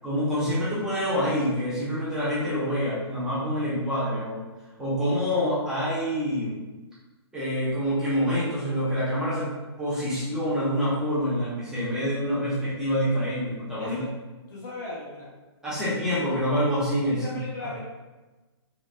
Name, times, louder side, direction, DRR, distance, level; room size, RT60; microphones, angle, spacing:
voice 1, 0.0-4.4 4.8-6.5 7.3-9.5 9.8-14.0 15.6-17.2, equal, 5° right, -11 dB, 0.9 m, -26 dB
voice 2, 13.8-14.1 14.5-15.3 15.8-15.9 17.1-17.9, left 2 dB, 40° left, -5 dB, 1.0 m, -38 dB
4.0 x 2.3 x 2.3 m, 1.2 s
hypercardioid pair, 145°, 14 cm